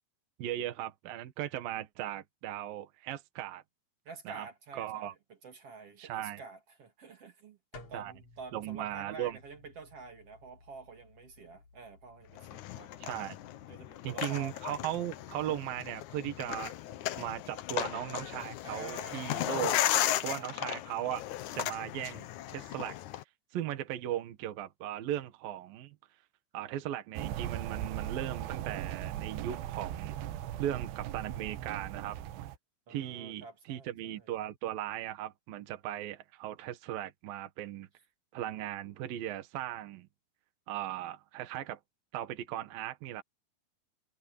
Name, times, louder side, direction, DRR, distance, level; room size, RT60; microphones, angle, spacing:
voice 1, 0.4-3.6 4.3-4.5 4.7-5.1 6.0-6.4 7.9-8.1 8.5-9.4 13.0-13.4 14.0-16.7 17.2-19.8 20.2-21.2 21.5-23.0 23.5-26.0 26.5-30.2 30.6-32.2 32.9-37.9 38.3-40.1 40.7-41.8 42.1-43.2, right 12 dB, 65° right, 3.1 m, -37 dB
voice 2, 4.1-12.9 13.7-14.6 15.0-15.1 18.6-20.8 32.9-34.3, right 4 dB, 40° right, 3.4 m, -49 dB
sound 1, 7.7-13.9, left 3 dB, 50° left, 5.5 m, -57 dB
sound 2, 12.4-23.2, left 13 dB, 80° left, 1.7 m, -35 dB
sound 3, 27.1-32.6, right 12 dB, 90° right, 3.2 m, -38 dB
omnidirectional pair, 4.6 m